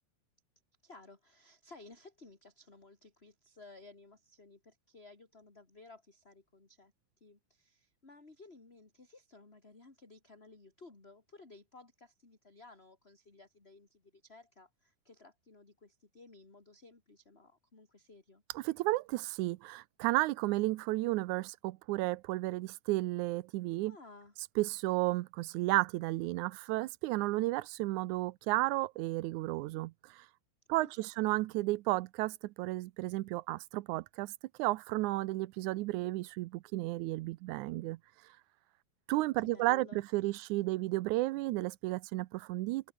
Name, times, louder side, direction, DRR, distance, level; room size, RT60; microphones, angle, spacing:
voice 1, 0.8-18.4 23.9-24.3 30.7-31.3 39.4-40.0, left 3 dB, 15° left, 3.1 m, -56 dB
voice 2, 18.5-23.9 24.6-30.3 30.7-34.3 34.6-38.0 39.1-39.9 40.1-42.9, right 19 dB, 90° right, 1.7 m, -33 dB
omnidirectional pair, 4.2 m